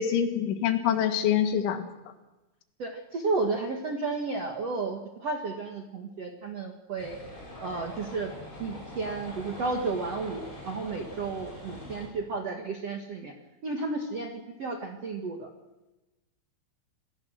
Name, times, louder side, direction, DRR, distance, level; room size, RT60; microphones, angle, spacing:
voice 1, 0.0-1.9, left 9 dB, 80° left, 7 dB, 4.0 m, -25 dB
voice 2, 2.8-7.2 7.6-8.3 8.6-13.3 13.6-15.5, right 3 dB, 60° right, 2 dB, 1.6 m, -32 dB
sound 1, 7.0-12.1, left 1 dB, 15° left, 7.2 m, -43 dB
28.0 x 19.0 x 6.4 m, 1.1 s
omnidirectional pair, 5.4 m